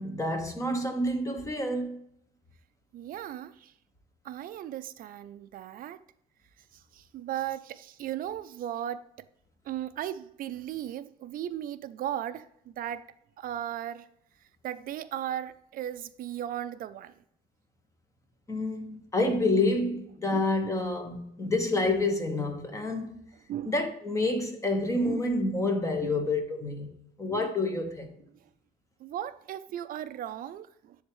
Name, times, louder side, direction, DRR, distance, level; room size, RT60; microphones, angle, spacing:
voice 1, 0.0-2.0 18.5-23.2 23.6-28.1, left 2 dB, 20° left, 1.3 m, -28 dB
voice 2, 2.9-3.7 4.2-6.0 6.7-9.0 9.6-13.1 13.4-14.1 14.6-17.1 20.3-20.7 23.5-23.8 25.0-25.2 26.0-26.3 27.3-27.5 29.0-31.0, right 11 dB, 55° right, 0.5 m, -37 dB
10.5 x 3.6 x 3.1 m
cardioid pair, 110°, 17 cm